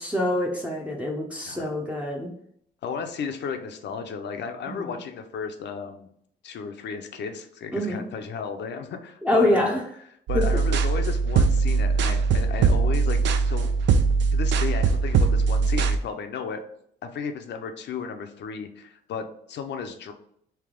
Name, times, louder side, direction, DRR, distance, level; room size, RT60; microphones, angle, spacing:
voice 1, 0.0-2.3 4.7-5.0 7.7-8.0 9.2-9.8 10.3-10.5, left 1 dB, 5° right, -2 dB, 0.6 m, -25 dB
voice 2, 2.8-6.1 6.4-9.8 10.3-13.7 14.3-16.6 17.0-20.1, left 6 dB, 60° left, 6 dB, 0.6 m, -34 dB
sound 1, 10.3-16.0, right 5 dB, 65° right, 0.4 m, -21 dB
3.4 x 2.8 x 3.7 m, 0.69 s
cardioid pair, 90°, 20 cm